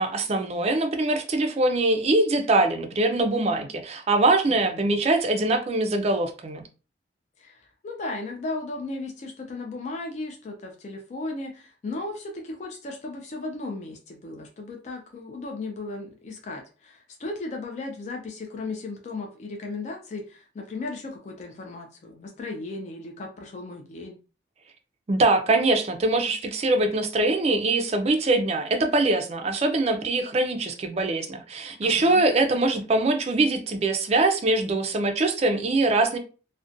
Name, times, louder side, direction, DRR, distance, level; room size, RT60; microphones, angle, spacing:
voice 1, 0.0-6.6 25.1-36.2, right 2 dB, 35° right, 0.4 m, -23 dB
voice 2, 7.4-24.2 31.8-32.2, left 2 dB, 40° left, 0.3 m, -36 dB
2.4 x 2.1 x 2.5 m
head